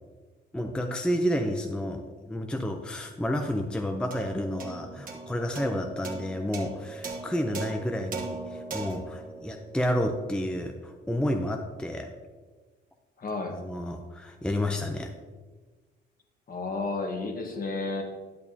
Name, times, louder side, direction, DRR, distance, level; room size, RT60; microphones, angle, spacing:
voice 1, 0.5-12.1 13.5-15.1, equal, 5° left, 4 dB, 0.6 m, -30 dB
sound 1, 4.1-10.7, right 3 dB, 45° right, 1.4 m, -40 dB
voice 2, 13.2-13.6 16.5-18.0, left 3 dB, 45° left, 3 dB, 1.4 m, -32 dB
10.5 x 6.5 x 2.8 m, 1.4 s
cardioid pair, 90°, 20 cm